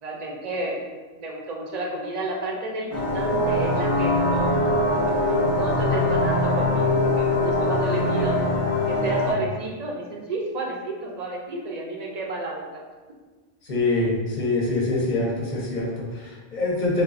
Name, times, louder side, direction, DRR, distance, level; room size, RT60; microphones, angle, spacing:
voice 1, 0.0-0.8 1.2-2.9 3.1-4.5 4.9-8.4 8.9-12.7, right 2 dB, 55° right, -1 dB, 0.5 m, -31 dB
sound 1, 2.9-9.3, left 1 dB, 25° left, 0.3 m, -22 dB
voice 2, 13.7-17.0, left 2 dB, 50° left, -4 dB, 0.8 m, -25 dB
3.5 x 2.3 x 2.4 m, 1.3 s
omnidirectional pair, 1.1 m